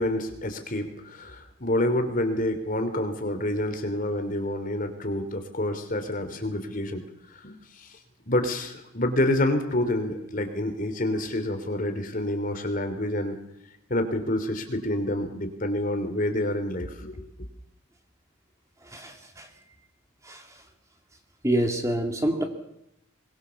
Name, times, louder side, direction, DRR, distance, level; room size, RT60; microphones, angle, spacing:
voice 1, 0.0-7.0 7.4-7.9 8.3-13.3 13.9-17.1, left 1 dB, 40° left, 7 dB, 3.2 m, -28 dB
voice 2, 18.8-19.5 20.2-20.6 21.4-22.4, right 1 dB, 15° right, 4 dB, 2.3 m, -27 dB
23.0 x 22.5 x 7.1 m, 0.82 s
head